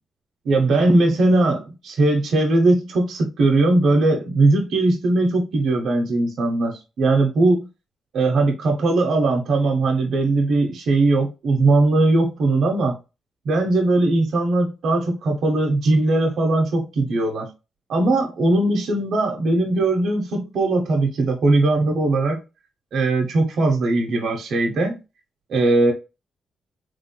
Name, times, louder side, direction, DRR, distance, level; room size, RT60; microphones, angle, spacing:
voice 1, 0.4-7.7 8.1-12.9 13.4-17.5 17.9-22.4 22.9-25.0 25.5-25.9, right 2 dB, 75° right, 0.8 m, -19 dB
3.7 x 3.2 x 2.2 m
supercardioid pair, 50°, 0 cm